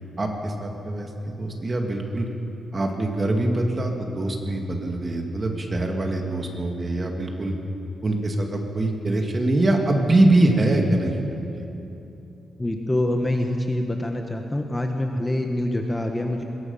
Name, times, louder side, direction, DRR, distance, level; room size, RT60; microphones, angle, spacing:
voice 1, 0.2-2.3 2.7-7.5 8.0-11.6, right 2 dB, 25° right, 2 dB, 2.2 m, -23 dB
voice 2, 12.6-16.4, left 1 dB, 10° left, 3 dB, 1.2 m, -25 dB
23.0 x 21.5 x 5.6 m, 3.0 s
wide cardioid pair, 155°, 0 cm